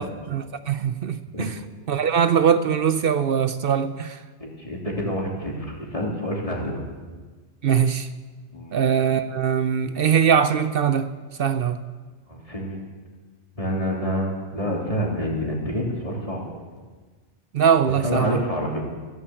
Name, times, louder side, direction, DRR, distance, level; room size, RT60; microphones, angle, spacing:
voice 1, 0.0-1.6 1.9-4.2 7.6-8.1 8.7-11.8 17.5-18.4, right 7 dB, 65° right, 11 dB, 0.8 m, -22 dB
voice 2, 4.4-6.8 8.5-8.7 12.3-12.8 13.6-16.6 18.0-18.8, equal, 35° left, -2 dB, 3.2 m, -27 dB
16.0 x 10.5 x 7.7 m, 1.4 s
omnidirectional pair, 1.1 m